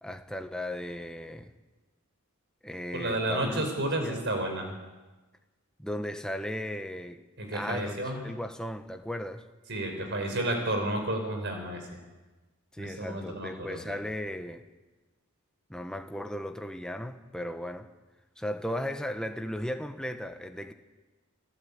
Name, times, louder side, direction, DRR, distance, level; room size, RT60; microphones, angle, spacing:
voice 1, 0.0-1.5 2.6-3.7 4.0-4.2 5.8-7.2 7.5-9.4 12.7-14.6 15.7-17.9 18.4-20.7, left 1 dB, 5° left, 1.2 m, -36 dB
voice 2, 2.9-4.7 7.4-8.4 9.7-12.0 12.8-13.8, right 1 dB, 55° right, 5.2 m, -31 dB
28.5 x 15.0 x 8.8 m
head